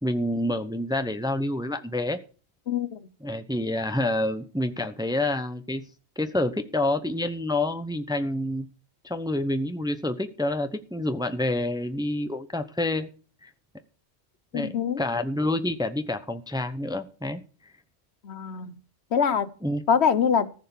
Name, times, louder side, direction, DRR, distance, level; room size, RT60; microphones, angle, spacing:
voice 1, 0.0-2.2 3.2-5.9 6.2-8.7 9.0-13.1 13.4-13.5 14.5-17.4 19.6-19.8, left 1 dB, 5° right, 0.7 m, -28 dB
voice 2, 2.7-3.0 14.5-15.0 18.2-18.7 19.1-19.5 19.9-20.5, left 7 dB, 75° left, 1.2 m, -24 dB
15.0 x 6.5 x 7.2 m
omnidirectional pair, 1.1 m